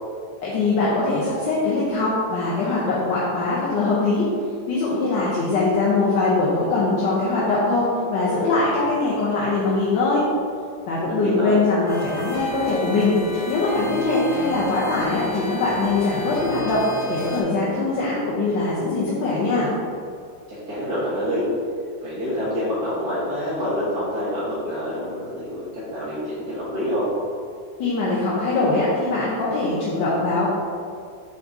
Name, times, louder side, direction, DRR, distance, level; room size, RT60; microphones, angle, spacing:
voice 1, 0.4-4.2 4.7-10.2 10.9-13.2 13.5-16.8 17.1-19.7 27.8-30.5, left 3 dB, 85° left, -8 dB, 1.7 m, -22 dB
voice 2, 11.0-11.6 20.5-21.5 22.0-27.1, equal, 60° right, -10 dB, 1.7 m, -27 dB
sound 1, 11.9-17.4, left 1 dB, 35° left, 0.6 m, -33 dB
7.6 x 2.7 x 4.7 m, 2.3 s
omnidirectional pair, 2.0 m